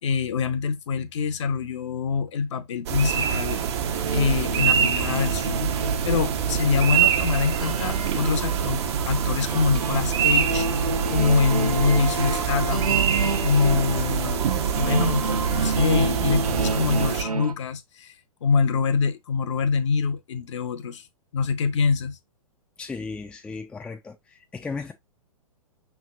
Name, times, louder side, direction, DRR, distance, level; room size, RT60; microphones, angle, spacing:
voice 1, 0.0-3.8 4.1-5.7 6.0-8.8 9.1-12.9 13.4-14.5 14.8-18.1 18.4-21.1 21.3-22.2, left 5 dB, 55° left, 0.8 m, -25 dB
sound 1, 2.9-17.2, right 8 dB, 50° right, 0.8 m, -25 dB
sound 2, 3.9-17.5, right 3 dB, 80° right, 0.8 m, -30 dB
voice 2, 22.8-24.9, left 4 dB, 5° left, 0.4 m, -35 dB
5.6 x 3.4 x 2.3 m
figure-of-eight pair, 115°, 19 cm